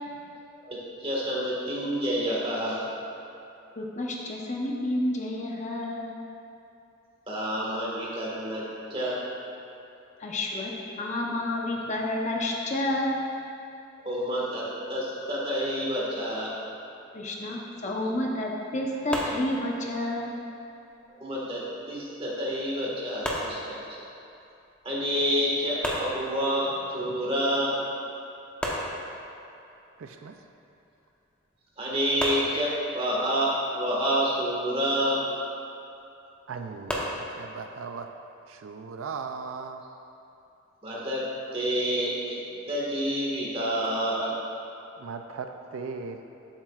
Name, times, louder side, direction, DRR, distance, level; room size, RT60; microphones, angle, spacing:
voice 1, 0.6-2.9 7.3-8.6 8.9-9.2 14.0-16.5 21.2-21.6 21.9-24.0 24.8-27.8 31.8-35.2 40.8-41.2 41.5-42.4 42.7-44.3, equal, 30° right, -5 dB, 1.6 m, -28 dB
voice 2, 3.8-6.1 10.2-10.7 11.0-13.2 17.1-20.3, left 1 dB, 35° left, -1 dB, 0.8 m, -30 dB
sound 1, 19.1-20.1 23.2-24.3 25.8-26.8 28.6-29.6 32.2-33.2 36.9-37.4, equal, 5° left, 0.9 m, -33 dB
voice 3, 30.0-30.3 36.5-38.1 38.6-39.8 45.0-46.3, right 5 dB, 80° right, 6 dB, 0.4 m, -37 dB
12.0 x 7.4 x 2.4 m, 2.8 s
head